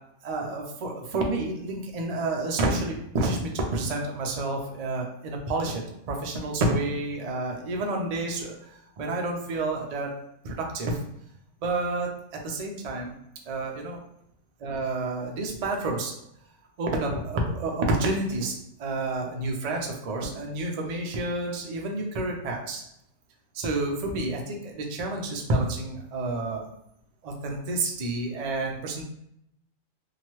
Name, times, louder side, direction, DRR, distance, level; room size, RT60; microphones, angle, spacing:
voice 1, 0.2-8.6 9.0-10.1 10.4-11.0 11.6-13.1 13.5-14.0 14.6-16.1 16.8-18.5 18.8-22.8 23.5-26.7 27.2-29.0, right 2 dB, 80° right, 0 dB, 0.3 m, -29 dB
2.8 x 2.2 x 3.0 m, 0.77 s
omnidirectional pair, 1.4 m